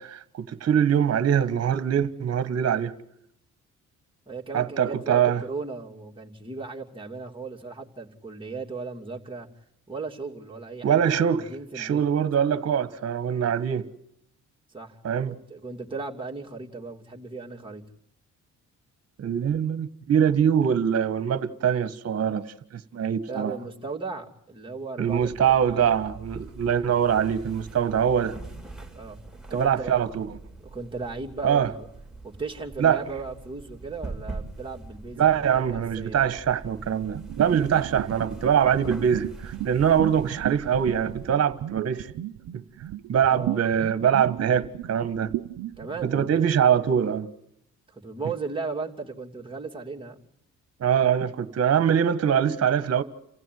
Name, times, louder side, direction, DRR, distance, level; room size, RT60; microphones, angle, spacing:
voice 1, 0.0-2.9 4.5-5.4 10.8-11.5 11.7-13.8 15.0-15.4 19.2-22.4 22.7-23.5 25.0-28.4 29.5-30.4 31.4-31.7 32.8-33.0 35.2-42.1 42.5-42.6 43.1-45.3 46.0-47.3 50.8-53.0, right 8 dB, 55° right, 1.7 m, -23 dB
voice 2, 4.3-9.5 9.9-12.0 14.7-15.0 15.3-17.8 23.3-26.0 28.9-29.2 29.5-30.1 30.7-31.9 32.2-36.3 43.3-43.8 45.8-46.5 47.9-50.3, right 4 dB, 15° right, 3.0 m, -36 dB
sound 1, 25.1-41.4, right 3 dB, ahead, 3.6 m, -43 dB
sound 2, 37.1-46.2, right 14 dB, 80° right, 0.9 m, -34 dB
28.5 x 15.5 x 9.5 m
cardioid pair, 90°, 30 cm